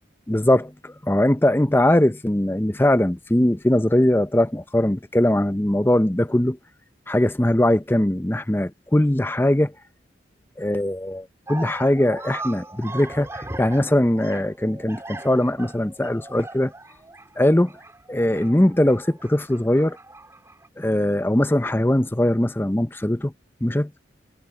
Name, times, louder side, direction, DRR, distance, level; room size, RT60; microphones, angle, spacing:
voice 1, 0.3-6.6 7.1-9.7 10.6-13.3 13.6-16.7 17.4-17.7 18.1-20.0 20.8-23.3 23.6-23.9, left 1 dB, 10° left, 0.6 m, -20 dB
sound 1, 11.5-20.7, right 2 dB, 15° right, 4.2 m, -39 dB
head